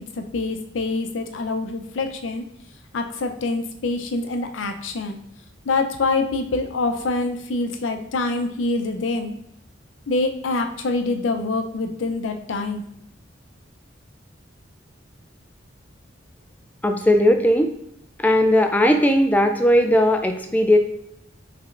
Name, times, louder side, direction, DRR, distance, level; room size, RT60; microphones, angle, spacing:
voice 1, 0.2-2.4 2.9-5.2 5.7-9.4 10.1-12.8, left 3 dB, 85° left, 6 dB, 0.6 m, -25 dB
voice 2, 16.8-17.7 18.2-20.8, equal, 10° left, 5 dB, 0.3 m, -17 dB
5.9 x 3.3 x 2.5 m, 0.76 s
head